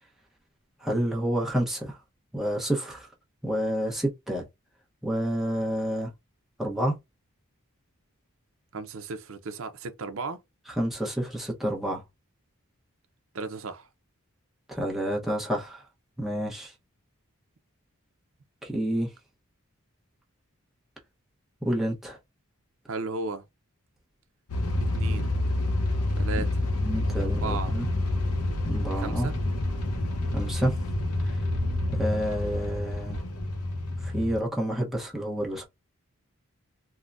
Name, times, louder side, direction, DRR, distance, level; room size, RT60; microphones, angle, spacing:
voice 1, 0.8-2.0 2.3-3.1 3.4-4.5 5.0-6.1 6.6-7.0 10.8-12.0 14.7-15.8 16.2-16.7 18.6-19.1 21.6-22.2 26.8-27.9 28.6-29.3 30.3-30.7 31.3-31.4 32.0-33.2 34.0-35.7, equal, ahead, 0.8 m, -29 dB
voice 2, 8.7-10.4 13.3-13.9 22.9-23.4 24.9-25.4 26.2-26.7 27.2-27.8 29.0-29.4, right 3 dB, 65° right, 0.6 m, -35 dB
sound 1, 24.5-34.4, left 1 dB, 80° left, 0.7 m, -28 dB
3.7 x 2.1 x 2.4 m
head